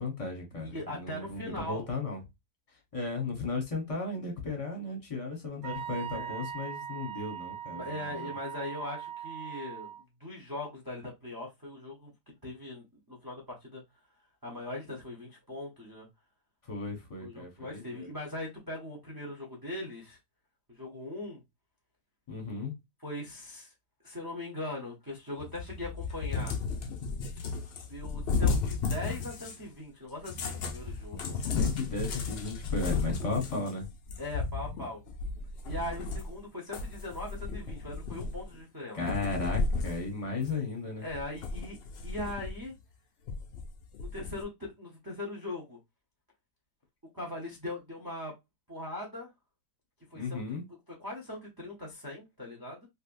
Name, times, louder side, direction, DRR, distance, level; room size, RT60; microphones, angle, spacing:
voice 1, 0.0-2.2 2.9-8.3 16.6-18.1 22.3-22.7 31.3-33.9 38.9-41.1 50.1-50.6, left 3 dB, 25° left, 1.0 m, -35 dB
voice 2, 0.6-1.8 6.1-6.4 7.7-9.9 10.2-13.8 14.4-16.1 17.2-20.2 20.7-21.4 23.0-23.7 24.0-26.5 27.9-31.4 34.2-35.0 35.6-39.0 41.0-41.8 42.0-42.7 44.0-45.8 47.1-48.3 48.7-49.3 50.1-50.4 50.9-52.9, left 1 dB, 20° right, 0.6 m, -40 dB
Wind instrument woodwind instrument, 5.6-10.0, right 10 dB, 65° right, 1.1 m, -40 dB
Cat, 25.4-29.7 30.2-36.4 36.7-38.6 39.0-40.1 40.4-40.5 41.1-42.7 43.3-44.4, left 4 dB, 70° left, 0.6 m, -34 dB
3.4 x 2.7 x 2.5 m
omnidirectional pair, 1.7 m